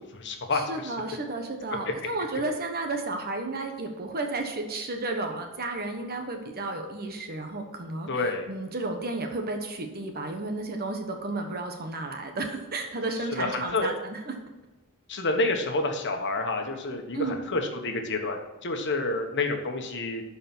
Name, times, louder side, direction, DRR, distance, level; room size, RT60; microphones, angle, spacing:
voice 1, 0.0-0.9 8.1-8.5 13.3-13.9 15.1-20.2, left 2 dB, 55° left, 4 dB, 1.3 m, -29 dB
voice 2, 0.5-14.4 17.1-17.4, right 2 dB, 45° right, 4 dB, 1.1 m, -32 dB
12.0 x 4.8 x 6.0 m, 1.1 s
head